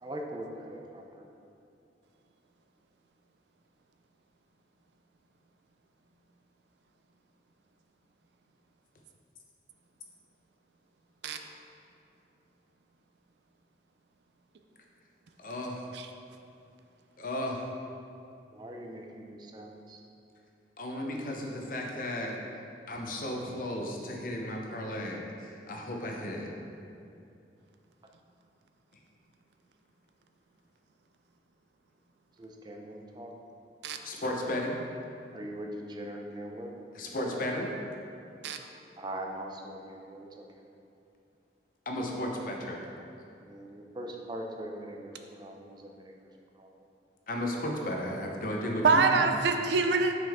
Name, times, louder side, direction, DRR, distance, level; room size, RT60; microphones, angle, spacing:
voice 1, 0.0-1.3 18.5-20.0 32.4-33.3 35.3-36.7 39.0-40.3 43.5-45.1 45.4-46.3 46.6-46.7, right 1 dB, 25° right, 1 dB, 0.5 m, -41 dB
voice 2, 15.4-15.8 17.2-17.6 20.8-22.4 22.9-26.5 34.0-34.8 36.9-37.7 41.9-42.8 47.3-49.2, left 1 dB, 50° left, 0 dB, 0.7 m, -34 dB
voice 3, 48.8-50.1, right 4 dB, 80° right, 6 dB, 0.4 m, -24 dB
6.1 x 5.2 x 3.6 m, 2.7 s
head